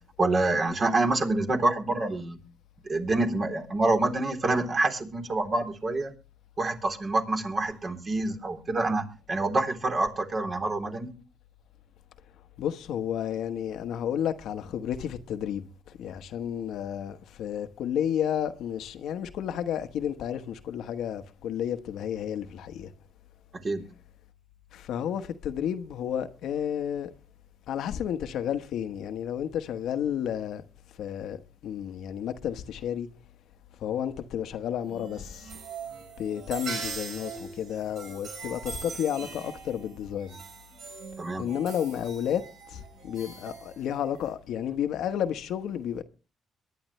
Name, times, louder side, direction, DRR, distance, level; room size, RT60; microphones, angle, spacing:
voice 1, 0.2-2.4 2.9-6.1 6.6-11.1 23.6-23.8 41.2-41.5, right 2 dB, 40° right, 3.4 m, -27 dB
voice 2, 12.6-22.9 24.7-27.1 27.7-30.6 31.0-33.1 33.8-35.6 36.2-40.4 41.4-46.0, left 9 dB, 80° left, 1.2 m, -31 dB
sound 1, 34.8-44.3, right 5 dB, 70° right, 4.9 m, -41 dB
23.0 x 10.5 x 3.2 m
cardioid pair, 90°, 0 cm